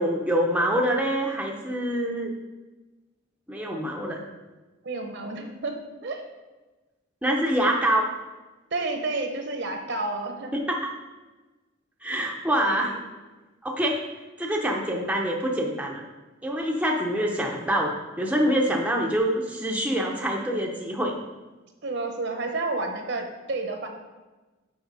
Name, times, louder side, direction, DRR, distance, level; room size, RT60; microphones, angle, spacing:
voice 1, 0.0-2.3 3.5-4.2 7.2-8.1 10.5-10.8 12.0-12.9 13.6-14.0 14.4-16.0 16.4-21.1, equal, 5° right, -1 dB, 0.7 m, -25 dB
voice 2, 4.8-6.2 8.7-10.6 12.6-13.0 21.8-23.9, right 3 dB, 60° right, 4 dB, 1.0 m, -31 dB
6.6 x 5.6 x 4.8 m, 1.2 s
head